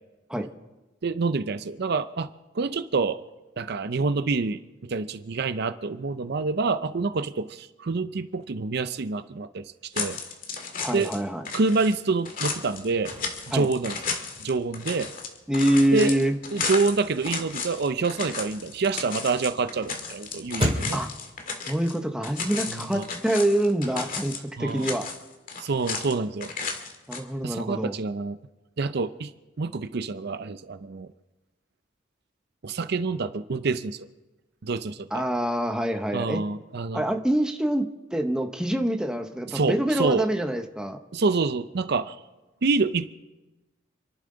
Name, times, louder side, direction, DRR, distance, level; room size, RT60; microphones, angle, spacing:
voice 1, 1.0-2.3 2.5-3.2 3.6-10.2 10.9-11.1 11.5-13.1 13.5-14.0 14.4-15.1 15.9-16.1 16.5-21.0 22.7-23.1 24.6-24.9 25.6-26.5 27.4-28.4 28.8-29.3 29.6-31.1 32.6-34.1 34.6-35.1 36.1-37.1 39.5-40.3 41.1-42.2 42.6-43.2, right 4 dB, 60° right, 12 dB, 0.6 m, -27 dB
sound 1, 9.9-11.2 11.4-22.0 22.2-24.4 24.7-26.1 26.4-27.2, left 5 dB, 45° left, 1.9 m, -34 dB
voice 2, 10.8-11.4 13.5-13.7 15.5-16.4 20.9-21.1 21.7-25.1 27.1-27.9 35.1-36.4 36.9-37.8 38.1-41.0, right 1 dB, 5° right, 5 dB, 1.0 m, -25 dB
Chirp tweet / Car / Slam, 12.8-22.7, equal, 30° right, 2.2 m, -38 dB
28.5 x 11.5 x 3.9 m, 1.1 s
head